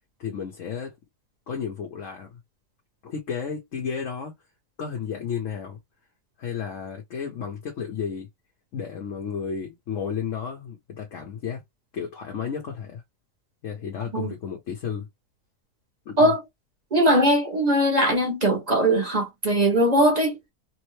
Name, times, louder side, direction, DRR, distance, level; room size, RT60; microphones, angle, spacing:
voice 1, 0.2-0.9 1.5-2.4 3.0-4.3 4.8-5.8 6.4-8.3 8.7-11.6 11.9-13.0 13.6-15.1 16.1-16.4, left 7 dB, 55° left, 1.1 m, -32 dB
voice 2, 16.9-20.4, right 1 dB, 30° right, 1.0 m, -20 dB
3.5 x 2.0 x 3.2 m
omnidirectional pair, 1.7 m